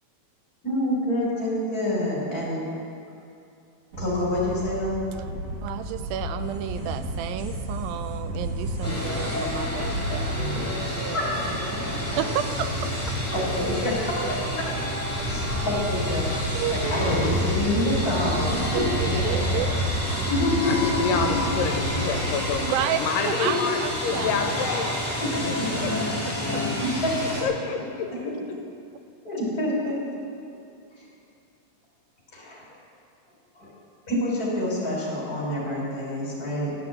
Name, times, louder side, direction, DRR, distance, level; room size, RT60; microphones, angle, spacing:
voice 1, 0.6-2.6 4.0-5.0 10.4-10.5 11.1-11.3 13.6-14.2 15.3-16.3 16.7-19.7 20.3-20.7 21.1-21.2 26.8-27.4 28.2-28.4 29.2-29.9 32.3-32.6 33.6-33.7 34.1-36.8, left 1 dB, 25° left, -5 dB, 3.5 m, -27 dB
sound 1, 3.9-22.7, right 1 dB, 40° right, 2.8 m, -32 dB
voice 2, 5.6-10.5 10.8-11.2 12.2-13.2 15.2-15.3 16.5-17.7 18.7-19.7 22.6-23.0 23.3-24.5 25.5-25.6 26.5-26.6, right 10 dB, 90° right, 10 dB, 2.4 m, -32 dB
sound 2, 8.8-27.4, left 1 dB, 5° left, 1.2 m, -29 dB
voice 3, 20.6-22.6 23.0-25.0 25.3-25.4 25.8-25.9 27.4-28.1, left 5 dB, 80° left, 4 dB, 2.3 m, -28 dB
12.5 x 7.5 x 7.6 m, 2.6 s
omnidirectional pair, 4.0 m